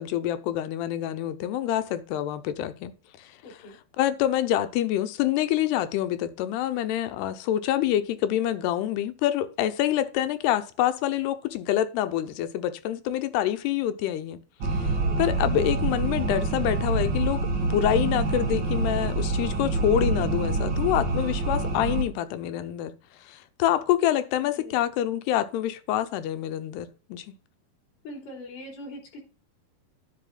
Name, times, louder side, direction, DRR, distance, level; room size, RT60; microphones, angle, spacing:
voice 1, 0.0-2.9 3.2-3.3 4.0-14.4 14.8-14.9 15.2-22.9 23.2-27.4, left 12 dB, 85° left, 2.9 m, -26 dB
voice 2, 3.4-3.8 15.0-15.2 24.6-24.8 28.0-29.2, left 1 dB, 55° left, 4.9 m, -41 dB
sound 1, 14.6-22.0, right 3 dB, 70° right, 1.0 m, -26 dB
10.5 x 5.5 x 5.8 m
omnidirectional pair, 4.6 m